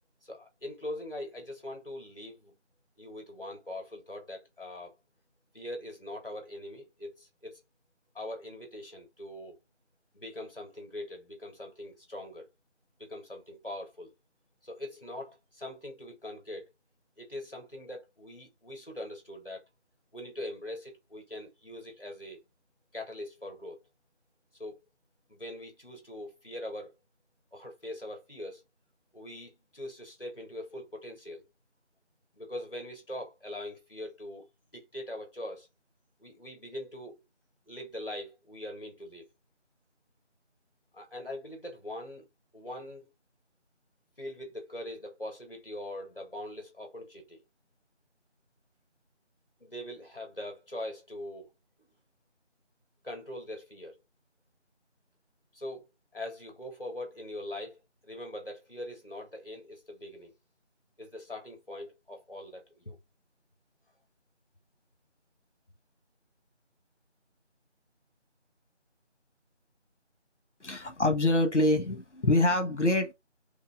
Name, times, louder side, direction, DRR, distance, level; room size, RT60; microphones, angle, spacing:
voice 1, 0.2-2.5 3.0-5.0 5.5-7.6 8.1-9.6 10.1-12.5 13.0-14.1 14.6-16.7 17.2-19.7 20.1-22.4 22.9-23.8 24.6-24.8 25.3-26.9 27.5-28.6 29.1-31.5 32.3-34.5 34.7-35.7 36.2-37.2 37.7-39.3 40.9-42.3 42.5-43.1 44.2-47.4 49.6-51.5 51.8-51.9 53.0-54.0 55.5-55.9 56.1-60.3 61.0-63.0, left 1 dB, 50° left, 1.6 m, -42 dB
voice 2, 70.6-73.1, left 1 dB, 75° left, 1.1 m, -25 dB
5.2 x 2.2 x 3.6 m
figure-of-eight pair, 175°, 35 cm